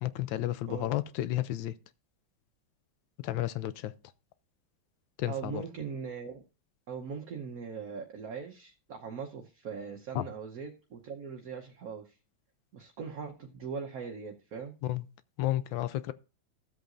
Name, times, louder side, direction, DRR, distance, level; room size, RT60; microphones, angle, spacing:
voice 1, 0.0-1.7 3.2-3.9 5.2-5.6 10.1-10.2 14.8-15.0 15.4-16.1, left 14 dB, 75° left, 1.3 m, -32 dB
voice 2, 5.3-6.4 6.9-12.2 12.7-14.7, right 6 dB, 55° right, 1.3 m, -40 dB
15.0 x 7.8 x 2.6 m
omnidirectional pair, 2.1 m